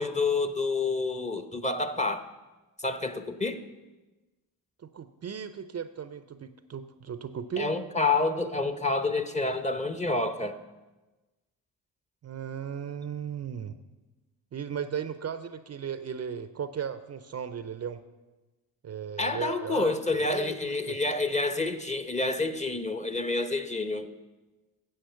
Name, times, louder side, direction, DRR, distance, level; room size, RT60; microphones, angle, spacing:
voice 1, 0.0-2.3 2.8-3.6 7.6-10.6 19.2-24.1, left 3 dB, 15° left, 9 dB, 0.9 m, -28 dB
voice 2, 4.8-7.7 12.2-13.7 14.5-18.0 18.8-19.9 20.2-21.0, right 7 dB, 35° right, 11 dB, 0.6 m, -36 dB
10.5 x 7.7 x 5.7 m, 1.2 s
hypercardioid pair, 50°, 45 cm